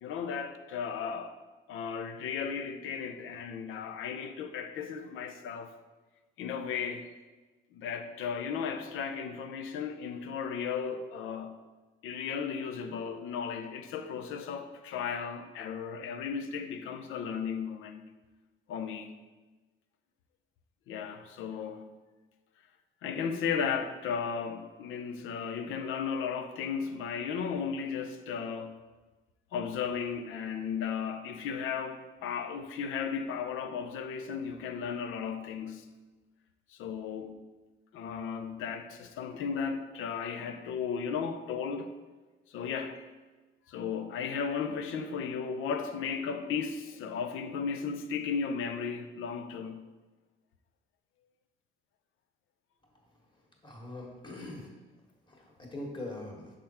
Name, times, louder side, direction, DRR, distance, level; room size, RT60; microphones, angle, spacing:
voice 1, 0.0-1.4 1.7-5.7 6.4-7.0 7.7-11.6 12.0-18.1 18.7-19.1 20.9-21.8 23.0-28.8 29.5-35.9 36.7-37.3 37.9-41.9 42.5-43.1 43.7-49.9, left 6 dB, 90° left, 0.6 m, -35 dB
voice 2, 53.6-54.7 55.3-56.5, left 2 dB, 25° left, 1.5 m, -42 dB
6.5 x 3.8 x 4.3 m
cardioid pair, 90°, 20 cm